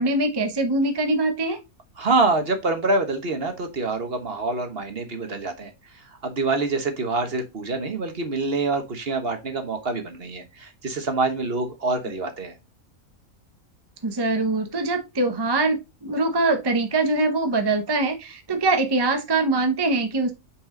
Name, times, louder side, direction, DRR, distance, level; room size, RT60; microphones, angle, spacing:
voice 1, 0.0-1.6 14.0-20.3, right 2 dB, 20° right, 6 dB, 0.8 m, -23 dB
voice 2, 2.0-12.5, right 3 dB, 45° right, 6 dB, 1.3 m, -26 dB
6.0 x 5.0 x 3.7 m, 0.24 s
omnidirectional pair, 1.5 m